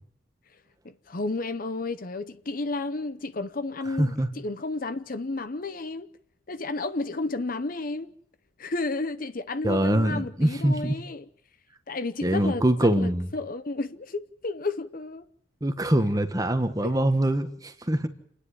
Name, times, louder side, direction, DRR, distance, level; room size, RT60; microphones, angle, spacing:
voice 1, 0.8-6.1 6.5-8.1 8.6-11.2 11.9-12.7 13.0-15.3 16.8-17.0, left 3 dB, 45° left, 0.8 m, -32 dB
voice 2, 4.0-4.3 9.6-11.0 12.2-13.3 15.6-18.1, right 1 dB, 15° right, 1.3 m, -24 dB
28.5 x 10.0 x 9.9 m
head